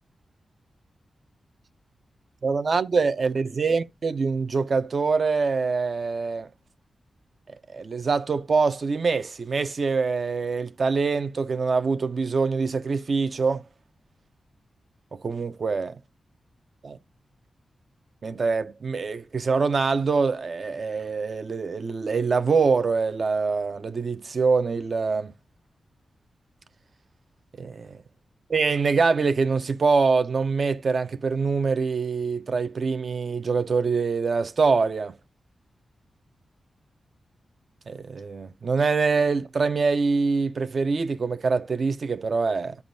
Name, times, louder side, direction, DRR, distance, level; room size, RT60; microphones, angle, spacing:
voice 1, 2.4-6.5 7.7-13.6 15.1-16.0 16.8-17.0 18.2-25.3 27.6-28.0 28.5-35.1 37.9-42.8, right 4 dB, 45° right, 0.5 m, -24 dB
13.0 x 5.2 x 2.6 m
wide cardioid pair, 150°, 0 cm